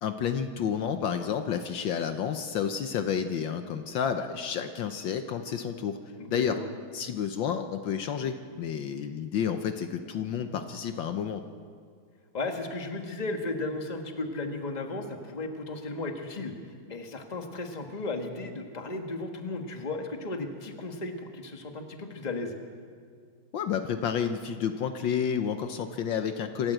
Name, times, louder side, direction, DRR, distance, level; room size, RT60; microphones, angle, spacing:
voice 1, 0.0-6.0 6.3-6.5 6.9-11.4 23.5-26.7, left 8 dB, 70° left, 7 dB, 1.5 m, -30 dB
voice 2, 6.2-6.7 12.3-16.5 16.9-22.5, left 2 dB, 20° left, 4 dB, 1.4 m, -35 dB
26.5 x 13.5 x 7.9 m, 2.1 s
omnidirectional pair, 2.3 m